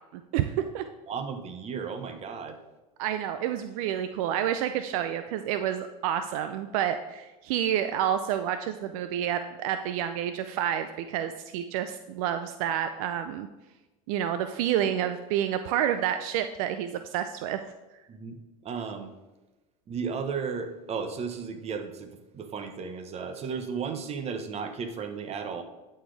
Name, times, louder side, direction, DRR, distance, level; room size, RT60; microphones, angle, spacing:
voice 1, 0.1-0.8 3.0-13.5 14.1-17.6, right 10 dB, 70° right, 9 dB, 0.5 m, -29 dB
voice 2, 1.1-2.6 18.1-19.1 19.9-25.6, right 6 dB, 35° right, 7 dB, 1.0 m, -34 dB
11.0 x 4.4 x 3.4 m, 1.1 s
supercardioid pair, 100°, 19 cm